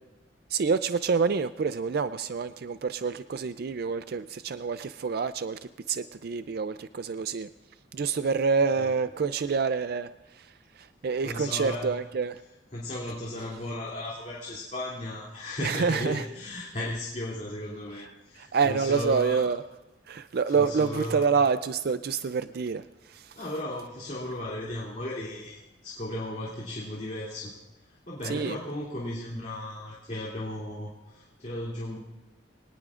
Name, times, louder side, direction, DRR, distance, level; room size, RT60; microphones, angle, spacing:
voice 1, 0.5-5.6 5.9-7.5 7.9-10.1 10.3-12.4 15.6-16.2 18.4-19.6 20.1-22.8 23.1-23.3 28.2-28.6, right 5 dB, 55° right, 12 dB, 0.4 m, -27 dB
voice 2, 11.2-12.0 12.7-19.4 20.5-21.3 23.3-27.5 27.9-32.0, left 1 dB, 40° left, -5 dB, 2.8 m, -35 dB
23.5 x 19.0 x 2.5 m, 1.1 s
head